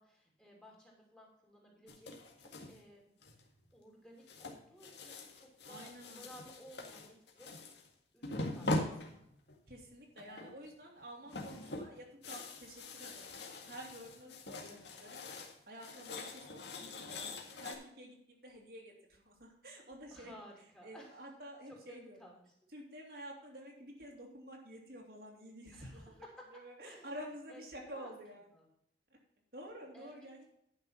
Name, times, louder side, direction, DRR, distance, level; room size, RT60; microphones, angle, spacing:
voice 1, 0.0-3.1 3.7-7.7 8.1-9.2 13.6-13.8 20.1-21.2 21.7-22.4 25.7-26.5 26.8-27.2 27.5-28.1 28.5-28.7 29.9-30.1 30.4-30.5, equal, 5° left, -2 dB, 2.9 m, -57 dB
sound 1, 1.9-2.8 3.2-3.6 4.3-7.9 8.2-9.6 10.2-10.7 11.0-15.5 15.8-17.7, left 2 dB, 70° left, 1.9 m, -42 dB
voice 2, 5.6-6.3 9.7-15.2 15.7-20.3 20.8-22.3 22.7-26.2 26.5-28.5 29.5-30.4, equal, 55° right, -1 dB, 2.7 m, -50 dB
11.0 x 6.2 x 5.5 m, 0.71 s
head